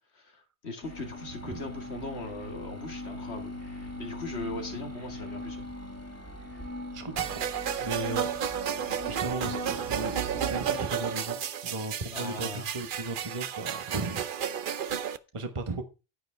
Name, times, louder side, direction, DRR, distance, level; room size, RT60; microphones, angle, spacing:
voice 1, 0.1-3.6 4.0-5.6 12.1-12.7, left 2 dB, 75° left, 5 dB, 2.2 m, -39 dB
sound 1, 0.8-10.9, left 1 dB, 15° left, 2.2 m, -41 dB
voice 2, 6.9-7.4 7.8-8.3 8.6-11.4 11.6-14.6 15.3-15.8, right 3 dB, 30° right, 7 dB, 1.2 m, -36 dB
sound 2, 7.2-15.2, right 8 dB, 55° right, 0.8 m, -32 dB
9.4 x 9.3 x 3.4 m, 0.29 s
omnidirectional pair, 1.1 m